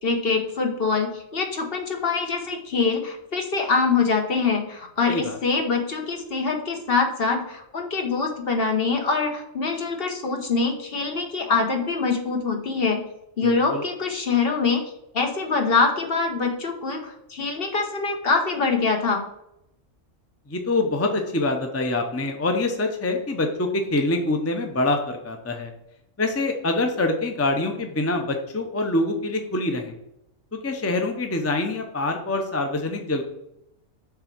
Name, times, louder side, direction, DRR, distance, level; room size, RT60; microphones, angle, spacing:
voice 1, 0.0-13.0 13.4-14.8 15.1-19.2, left 4 dB, 50° left, 3 dB, 1.2 m, -24 dB
voice 2, 5.1-5.4 13.4-13.8 20.5-25.7 26.2-29.9 30.5-33.2, left 2 dB, 20° left, 4 dB, 0.5 m, -25 dB
6.7 x 3.6 x 6.0 m, 0.82 s
omnidirectional pair, 1.3 m